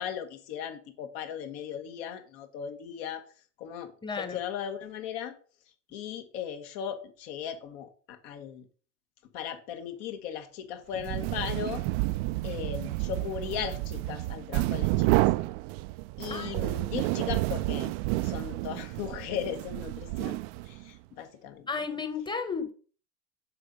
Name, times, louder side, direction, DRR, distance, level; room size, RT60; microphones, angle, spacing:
voice 1, 0.0-3.2 3.6-5.3 5.9-8.7 9.3-11.8 12.4-15.2 16.2-17.9 18.2-20.4 20.7-21.7, left 9 dB, 60° left, 1.5 m, -37 dB
voice 2, 4.0-4.4 16.3-16.7 21.7-22.7, left 5 dB, 10° left, 1.1 m, -33 dB
sound 1, 10.9-20.9, right 19 dB, 55° right, 0.4 m, -30 dB
6.9 x 4.4 x 5.2 m
hypercardioid pair, 100°, 37 cm